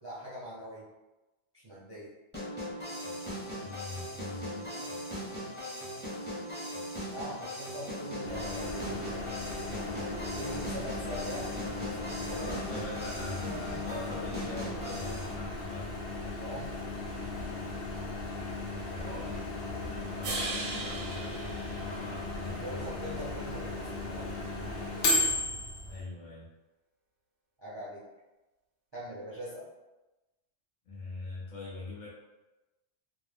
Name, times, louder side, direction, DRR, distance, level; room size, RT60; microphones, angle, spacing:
voice 1, 0.0-0.9 1.5-2.1 7.1-9.3 10.4-12.6 16.3-16.7 22.6-24.3 27.6-28.0 28.9-29.7, equal, 40° right, -8 dB, 0.4 m, -42 dB
sound 1, 2.3-15.3, equal, 10° left, 0.6 m, -39 dB
voice 2, 3.6-5.0 12.3-15.9 18.8-19.5 19.8-21.5 21.7-23.2 25.8-26.5 30.9-32.1, left 2 dB, 50° left, -6 dB, 0.6 m, -43 dB
Microwave oven, 8.2-26.0, left 2 dB, 90° left, 1.0 m, -36 dB
sound 2, 20.2-22.6, right 3 dB, 85° right, 0.9 m, -38 dB
2.4 x 2.0 x 3.3 m, 1.1 s
omnidirectional pair, 1.2 m